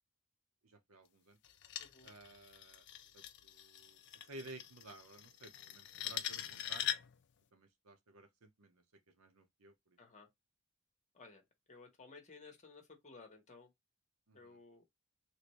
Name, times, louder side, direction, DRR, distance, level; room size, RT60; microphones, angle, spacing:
voice 1, 0.6-1.4 2.0-2.8 3.1-6.9 7.5-10.0 14.3-14.6, right 2 dB, 85° right, 0.8 m, -55 dB
sound 1, 1.4-7.2, left 11 dB, 55° left, 0.5 m, -43 dB
voice 2, 1.8-2.1 10.0-10.3 11.1-13.7 14.3-14.8, left 4 dB, 35° left, 1.1 m, -57 dB
3.1 x 2.6 x 3.0 m
head